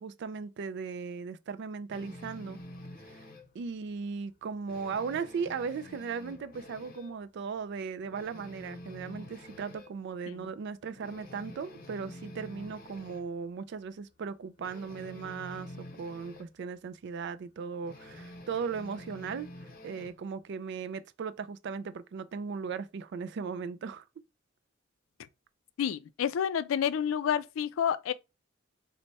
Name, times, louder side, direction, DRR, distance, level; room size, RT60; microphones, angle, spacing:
voice 1, 0.0-2.6 3.1-3.2 3.5-19.5 19.8-24.0, right 5 dB, 60° right, 0.3 m, -37 dB
sound 1, 1.9-3.5 3.9-4.1 4.4-7.2 7.6-7.7 8.0-9.9 10.4-10.5 10.9-13.3 14.6-16.5 17.8-20.2, left 1 dB, 45° left, 0.6 m, -48 dB
voice 2, 25.8-28.1, left 8 dB, 85° left, 0.3 m, -29 dB
3.2 x 2.1 x 4.0 m
head